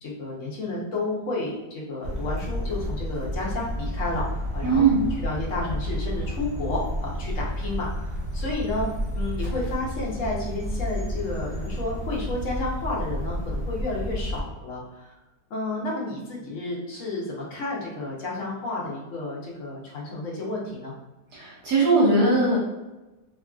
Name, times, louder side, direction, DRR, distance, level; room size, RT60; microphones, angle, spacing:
voice 1, 0.0-15.1 15.5-20.9, left 2 dB, 60° left, -4 dB, 0.9 m, -31 dB
sound 1, 2.0-14.4, equal, 40° right, 0.6 m, -31 dB
voice 2, 4.6-5.0 21.3-22.6, right 3 dB, 70° right, -6 dB, 1.2 m, -20 dB
2.9 x 2.4 x 2.3 m, 1.1 s
omnidirectional pair, 1.8 m